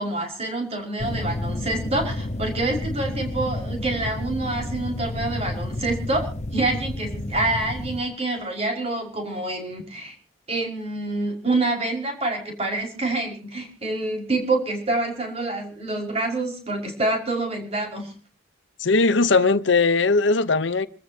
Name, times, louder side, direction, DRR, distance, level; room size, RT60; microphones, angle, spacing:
voice 1, 0.0-10.1 10.5-18.1, right 2 dB, 30° right, 5.4 m, -27 dB
sound 1, 1.0-8.0, left 1 dB, 35° left, 1.0 m, -30 dB
voice 2, 18.8-20.9, left 3 dB, 70° left, 0.9 m, -19 dB
28.0 x 14.5 x 2.9 m
head